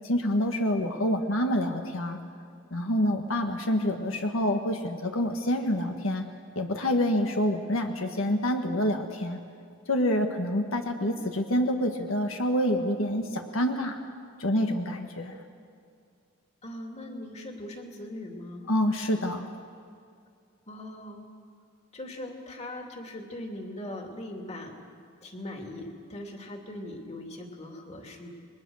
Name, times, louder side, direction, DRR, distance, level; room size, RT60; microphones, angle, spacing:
voice 1, 0.0-2.2 2.7-6.2 6.5-9.4 9.9-14.0 14.4-15.4 18.7-19.5, left 1 dB, 90° left, 4 dB, 1.7 m, -27 dB
voice 2, 16.6-18.6 20.7-21.2 21.9-24.7 25.2-28.3, left 1 dB, 35° left, 2 dB, 3.0 m, -40 dB
29.0 x 22.0 x 6.5 m, 2.3 s
head